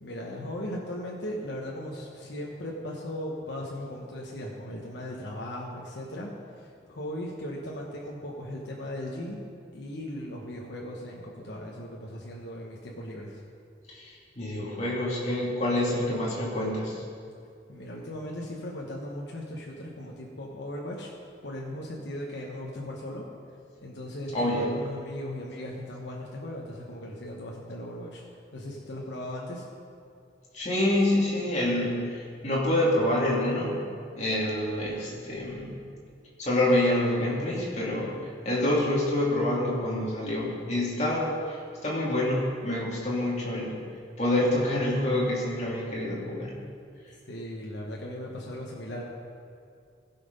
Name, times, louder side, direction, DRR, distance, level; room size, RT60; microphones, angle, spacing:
voice 1, 0.0-9.4 9.7-13.4 17.7-21.1 21.4-23.2 23.8-28.2 28.5-29.6 47.3-49.0, left 1 dB, 70° left, -2 dB, 1.1 m, -37 dB
voice 2, 13.9-17.0 24.3-24.7 30.5-33.7 34.1-35.7 36.4-38.1 38.4-43.7 44.2-46.5, left 1 dB, 40° left, -5 dB, 2.5 m, -27 dB
15.5 x 5.8 x 5.4 m, 2.4 s
head